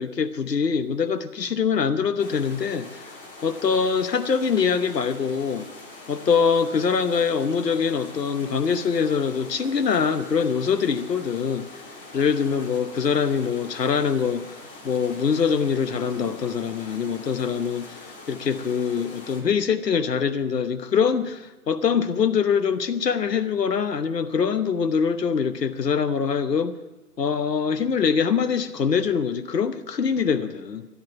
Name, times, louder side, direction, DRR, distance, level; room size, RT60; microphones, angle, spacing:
voice 1, 0.0-3.2 3.4-5.6 6.1-11.7 12.1-14.6 14.8-26.7 27.2-30.9, left 6 dB, 80° left, 10 dB, 1.1 m, -24 dB
sound 1, 2.2-19.4, left 3 dB, 35° left, 2.7 m, -43 dB
11.5 x 11.0 x 9.9 m, 1.1 s
figure-of-eight pair, 150°, 48 cm